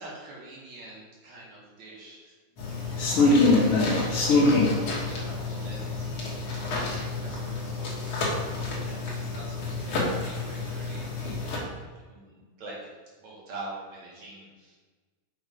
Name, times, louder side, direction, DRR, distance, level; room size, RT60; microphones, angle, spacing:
voice 1, 0.0-2.3 2.6-7.4 7.7-11.7 12.1-12.8 13.2-14.8, right 2 dB, 50° right, -5 dB, 2.9 m, -45 dB
sound 1, 2.6-11.6, left 2 dB, 55° left, 1.7 m, -26 dB
6.4 x 5.9 x 5.1 m, 1.4 s
omnidirectional pair, 4.6 m